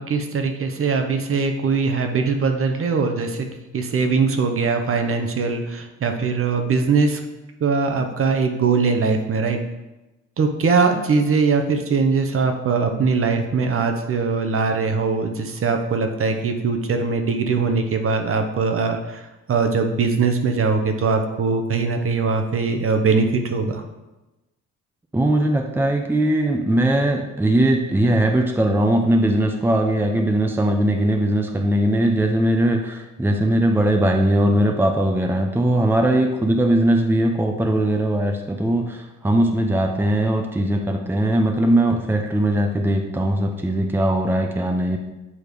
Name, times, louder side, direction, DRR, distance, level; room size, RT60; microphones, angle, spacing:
voice 1, 0.0-3.5 3.7-7.2 7.6-9.6 10.4-19.2 19.5-23.8, right 4 dB, 45° right, 5 dB, 0.9 m, -21 dB
voice 2, 25.1-45.0, right 1 dB, 5° right, 4 dB, 0.6 m, -20 dB
8.5 x 3.2 x 5.2 m, 1.0 s
cardioid pair, 90°, 30 cm